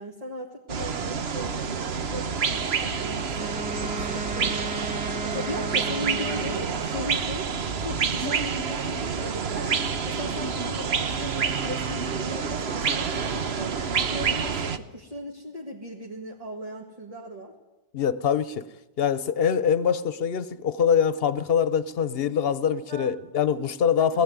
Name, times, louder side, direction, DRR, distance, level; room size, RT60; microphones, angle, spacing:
voice 1, 0.0-4.9 5.3-7.5 7.8-13.7 14.0-17.5 22.9-23.1 24.0-24.2, equal, 35° right, 2.3 m, -37 dB
Godwanaland amtosphere, 0.7-14.8, right 6 dB, 90° right, 1.3 m, -28 dB
Wind instrument woodwind instrument, 3.3-7.1, right 2 dB, 10° right, 1.2 m, -35 dB
voice 2, 17.9-18.6 19.0-24.2, left 7 dB, 70° left, 1.1 m, -24 dB
20.0 x 15.0 x 9.5 m
omnidirectional pair, 1.0 m